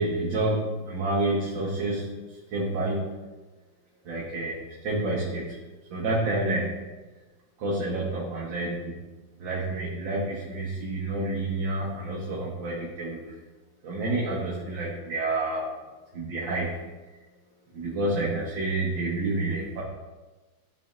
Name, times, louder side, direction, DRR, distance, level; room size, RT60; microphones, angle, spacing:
voice 1, 0.0-3.1 4.1-5.6 5.9-6.7 7.6-9.0 9.4-13.4 13.8-15.7 16.1-16.7 17.7-19.8, right 2 dB, 80° right, -6 dB, 1.9 m, -29 dB
11.5 x 4.1 x 2.6 m, 1.2 s
omnidirectional pair, 2.0 m